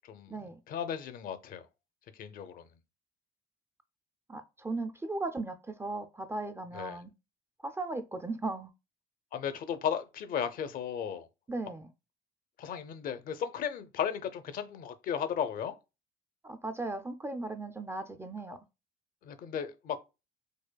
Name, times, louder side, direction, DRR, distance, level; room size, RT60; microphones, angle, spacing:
voice 1, 0.7-1.7 2.2-2.6 6.7-7.0 9.3-11.3 12.6-15.8 19.2-20.0, left 8 dB, 55° left, 0.5 m, -35 dB
voice 2, 4.3-7.1 7.6-8.7 11.5-11.9 16.4-18.6, right 2 dB, 15° right, 0.3 m, -37 dB
4.8 x 2.3 x 2.2 m
cardioid pair, 110°, 17 cm